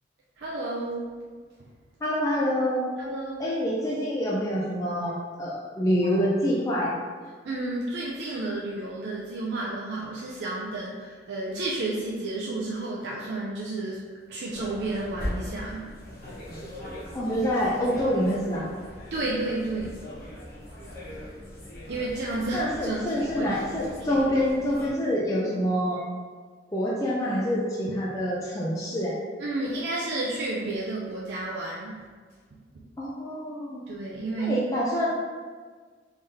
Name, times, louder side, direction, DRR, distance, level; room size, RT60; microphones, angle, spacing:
voice 1, 0.4-1.1 3.0-3.5 5.1-5.2 7.4-14.0 14.3-15.9 19.1-20.0 21.9-23.5 24.1-24.2 29.4-32.0 33.9-34.6, right 2 dB, 70° right, -4 dB, 0.4 m, -31 dB
voice 2, 2.0-2.8 3.4-7.0 17.1-18.7 22.5-26.0 26.7-29.1 33.0-33.8 34.4-35.1, equal, 20° left, -6 dB, 0.4 m, -26 dB
sound 1, 14.5-24.9, left 1 dB, 50° left, 1.0 m, -40 dB
3.7 x 3.4 x 2.7 m, 1.5 s
head